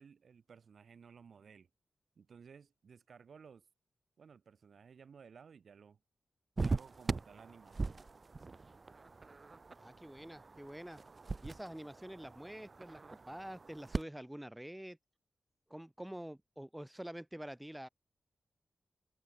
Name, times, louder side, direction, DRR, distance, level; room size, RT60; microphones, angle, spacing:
voice 1, 0.0-1.7 2.2-3.7 4.2-6.0 6.6-8.0, right 6 dB, 70° right, 1.4 m, -57 dB
sound 1, 6.6-14.0, right 3 dB, 35° right, 0.8 m, -41 dB
voice 2, 9.8-11.0 11.4-15.0 15.7-17.9, right 1 dB, 5° right, 0.4 m, -47 dB
wide cardioid pair, 120°, 0 cm